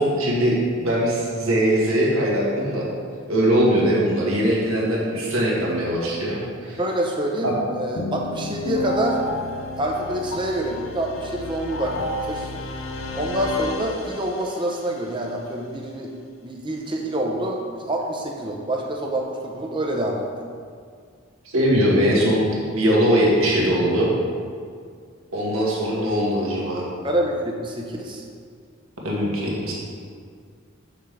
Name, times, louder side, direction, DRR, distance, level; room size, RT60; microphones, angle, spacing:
voice 1, 0.0-2.9 3.3-6.8 7.4-7.6 21.5-24.1 25.3-26.9 29.0-29.7, equal, 80° right, -4 dB, 1.6 m, -21 dB
voice 2, 6.8-9.2 9.8-11.9 12.3-12.5 13.1-16.1 16.4-20.2 27.0-28.2, right 1 dB, 20° right, 0 dB, 0.7 m, -26 dB
sound 1, 8.0-14.7, left 1 dB, 70° left, 0.6 m, -31 dB
7.4 x 5.9 x 3.3 m, 2.1 s
head